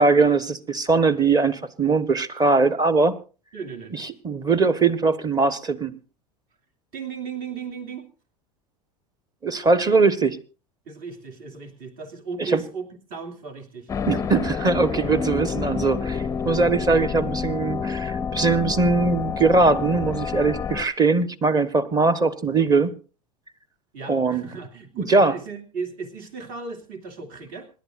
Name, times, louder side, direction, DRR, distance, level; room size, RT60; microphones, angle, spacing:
voice 1, 0.0-3.1 3.9-5.9 9.4-10.4 12.4-12.6 14.1-22.9 24.1-24.4 25.0-25.4, right 3 dB, 20° right, 14 dB, 1.3 m, -21 dB
voice 2, 3.5-4.1 6.9-8.1 10.8-12.8 13.1-13.9 23.9-27.7, right 5 dB, 50° right, 4 dB, 2.9 m, -36 dB
sound 1, 13.9-20.9, left 6 dB, 15° left, 0.6 m, -28 dB
26.5 x 11.5 x 2.6 m, 0.34 s
figure-of-eight pair, 85°, 19 cm